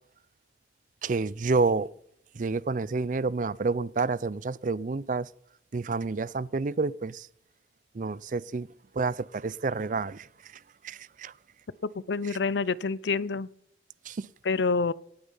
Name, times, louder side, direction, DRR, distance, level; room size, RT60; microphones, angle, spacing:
voice 1, 1.0-1.9 2.3-5.3 5.7-7.3 7.9-8.7 8.9-10.5 10.8-11.3 12.2-12.4 14.0-14.3, right 4 dB, 45° right, 0.4 m, -29 dB
voice 2, 12.0-13.5 14.5-14.9, left 4 dB, 75° left, 0.6 m, -27 dB
18.0 x 8.7 x 5.5 m
head